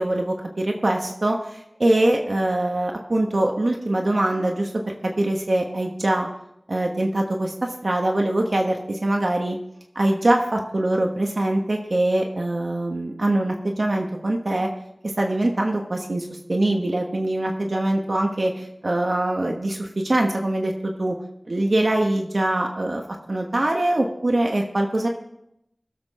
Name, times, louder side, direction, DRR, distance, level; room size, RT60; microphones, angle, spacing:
voice 1, 0.0-6.3 6.7-9.6 9.9-14.7 15.0-21.2 21.5-23.0 23.3-25.1, right 1 dB, 70° right, 2 dB, 1.3 m, -23 dB
21.0 x 7.5 x 3.7 m, 0.81 s
wide cardioid pair, 55°, 0 cm